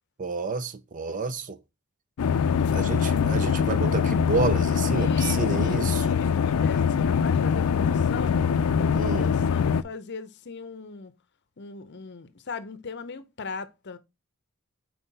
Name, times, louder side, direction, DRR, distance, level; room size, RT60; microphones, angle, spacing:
voice 1, 0.2-1.6 2.6-6.1 9.0-9.3, right 4 dB, 35° right, 0.6 m, -30 dB
sound 1, 2.2-9.8, left 6 dB, 90° left, 0.4 m, -23 dB
voice 2, 4.9-8.4 8.8-11.1 11.6-14.0, left 4 dB, 55° left, 0.7 m, -39 dB
5.5 x 4.6 x 4.0 m
head